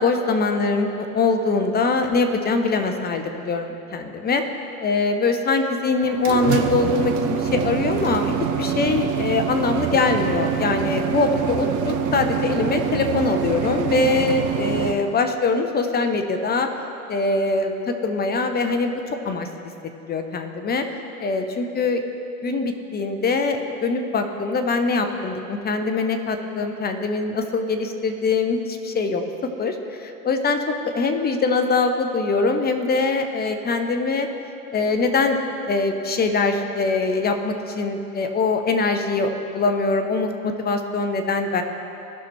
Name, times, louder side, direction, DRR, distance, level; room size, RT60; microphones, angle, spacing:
voice 1, 0.0-4.4 4.8-16.7 17.1-18.9 19.2-19.5 20.1-20.9 21.2-22.0 22.4-29.2 29.6-34.3 34.7-41.6, left 3 dB, 20° left, 6 dB, 0.8 m, -23 dB
sound 1, 6.0-14.9, right 7 dB, 40° right, 0.9 m, -25 dB
17.0 x 5.8 x 3.2 m, 2.9 s
hypercardioid pair, 100°, 45 cm